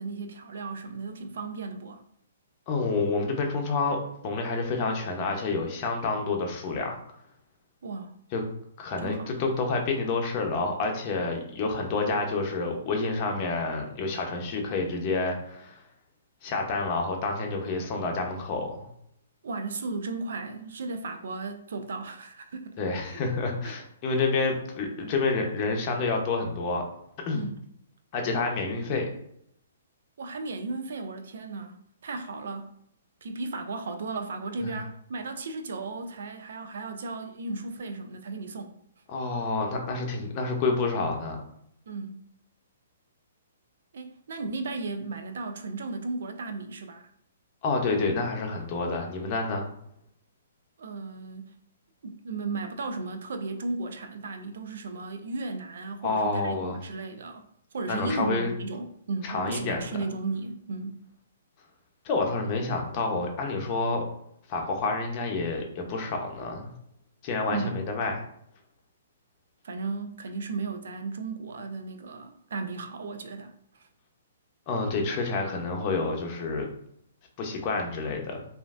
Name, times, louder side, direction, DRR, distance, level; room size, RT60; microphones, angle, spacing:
voice 1, 0.0-2.0 7.8-8.1 9.0-9.3 19.4-22.8 23.1-23.2 23.6-23.8 27.3-27.7 30.2-32.7 33.2-38.8 41.9-42.3 43.9-47.1 50.8-51.5 52.0-61.0 67.5-67.8 69.6-73.9, right 3 dB, 70° right, 0.4 m, -35 dB
voice 2, 2.7-4.0 4.2-7.0 8.3-8.4 8.8-15.8 16.4-18.9 22.8-26.8 27.3-27.4 28.1-29.1 34.6-34.7 39.1-41.4 47.6-49.7 56.0-56.8 57.9-58.5 59.2-59.8 62.0-64.0 64.5-66.7 67.2-68.2 74.7-76.7 77.4-78.5, left 3 dB, 35° left, 0.7 m, -28 dB
3.1 x 2.5 x 2.4 m
hypercardioid pair, 140°, 0 cm